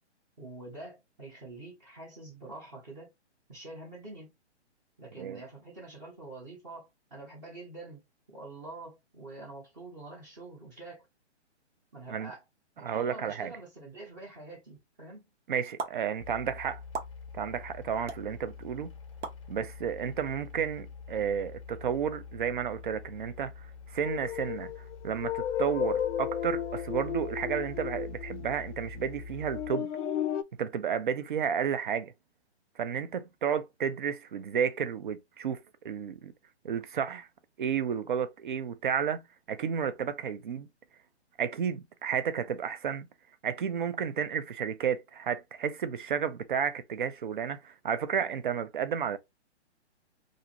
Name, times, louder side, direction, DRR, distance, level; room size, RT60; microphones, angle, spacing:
voice 1, 0.4-3.1 3.5-4.3 5.0-8.0 8.3-11.1 11.9-12.4 12.8-15.2, right 2 dB, 15° right, 0.7 m, -46 dB
voice 2, 12.8-13.5 15.5-16.8 17.3-18.9 19.5-23.5 23.9-24.7 25.0-29.9 30.6-32.1 32.8-36.3 36.6-37.3 37.6-40.7 41.4-43.1 43.4-49.2, right 7 dB, 45° right, 0.4 m, -32 dB
sound 1, 15.8-15.9 16.9-17.1 18.1-18.2 19.2-19.4, right 5 dB, 80° right, 0.9 m, -35 dB
sound 2, 16.2-29.7, left 5 dB, 30° left, 0.5 m, -45 dB
sound 3, 24.0-28.8 29.5-30.4, left 10 dB, 80° left, 0.5 m, -33 dB
2.5 x 2.4 x 2.8 m
hypercardioid pair, 160°, 35 cm